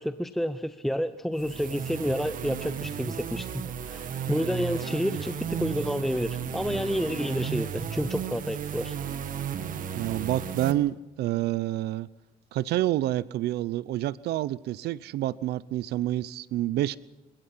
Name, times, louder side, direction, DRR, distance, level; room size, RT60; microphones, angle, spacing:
voice 1, 0.0-9.0, equal, ahead, 11 dB, 0.8 m, -30 dB
sound 1, 1.3-10.7, right 8 dB, 55° right, 1.8 m, -34 dB
voice 2, 9.9-12.1 12.5-17.0, right 14 dB, 75° right, 19 dB, 0.7 m, -28 dB
29.5 x 17.0 x 5.6 m, 1.0 s
cardioid pair, 110°, 17 cm